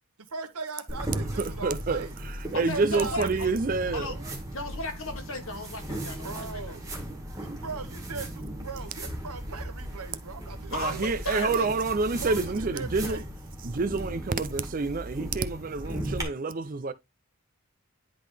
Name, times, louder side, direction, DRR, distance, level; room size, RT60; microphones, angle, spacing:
voice 1, 0.3-2.2 2.7-3.5 6.2-6.9 7.4-11.1 12.2-13.3, right 4 dB, 90° right, 1.3 m, -39 dB
sound 1, 0.9-16.2, right 1 dB, 15° right, 1.8 m, -37 dB
voice 2, 1.2-4.1 10.7-13.2 13.6-16.9, right 4 dB, 40° right, 0.4 m, -28 dB
voice 3, 2.5-3.5 3.9-4.2 4.5-6.8 10.7-11.8, left 2 dB, 65° left, 1.7 m, -35 dB
10.0 x 3.7 x 3.4 m
head